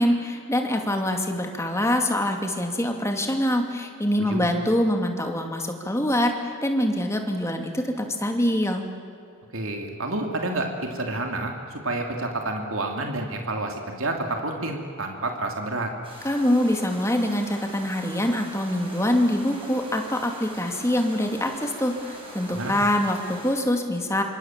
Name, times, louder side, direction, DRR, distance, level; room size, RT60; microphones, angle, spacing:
voice 1, 0.0-8.9 16.2-24.2, left 1 dB, 15° left, 4 dB, 2.6 m, -24 dB
voice 2, 9.5-15.9 22.5-22.7, right 2 dB, 65° right, 2 dB, 3.0 m, -29 dB
sound 1, 16.0-23.5, right 1 dB, 25° right, 6.6 m, -42 dB
27.0 x 25.0 x 7.5 m, 2.4 s
head